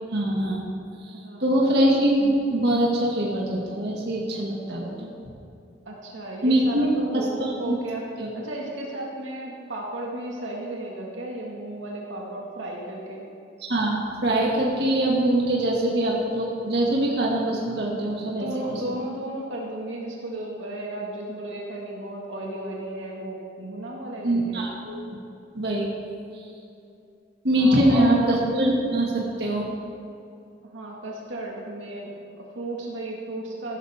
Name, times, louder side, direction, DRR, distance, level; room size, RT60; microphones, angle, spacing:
voice 1, 0.1-0.7 1.4-5.1 6.4-6.9 7.1-7.8 8.2-8.3 13.7-18.7 24.2-25.0 25.5-25.9 27.4-29.1 29.4-29.7, right 1 dB, 60° right, -3 dB, 2.1 m, -23 dB
voice 2, 1.1-1.7 5.9-8.1 8.3-13.2 18.2-24.6 27.6-28.2 30.6-33.8, right 1 dB, 90° right, -2 dB, 2.0 m, -34 dB
15.5 x 12.0 x 3.7 m, 2.6 s
head